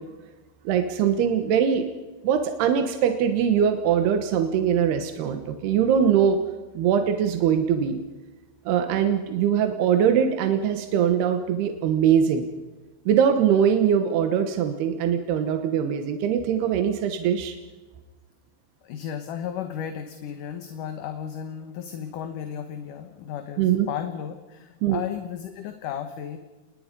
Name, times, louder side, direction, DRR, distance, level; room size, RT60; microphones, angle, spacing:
voice 1, 0.6-1.9 2.2-6.4 6.7-8.0 8.7-12.5 13.1-17.6 23.6-23.9 24.8-25.0, right 8 dB, 90° right, 7 dB, 3.3 m, -22 dB
voice 2, 18.8-26.4, left 9 dB, 65° left, 7 dB, 2.5 m, -34 dB
27.0 x 21.0 x 5.3 m, 1.2 s
omnidirectional pair, 4.5 m